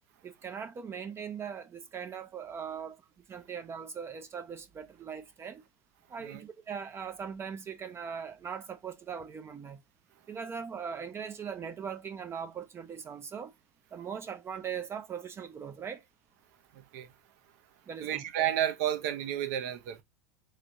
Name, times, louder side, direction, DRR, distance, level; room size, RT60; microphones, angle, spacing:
voice 1, 0.2-3.0 3.3-5.6 6.1-9.8 10.3-13.5 13.9-16.0 17.9-18.2, right 7 dB, 25° right, 0.5 m, -40 dB
voice 2, 16.7-17.1 18.0-20.0, right 11 dB, 65° right, 0.8 m, -32 dB
3.3 x 3.2 x 2.7 m
hypercardioid pair, 100°, 10 cm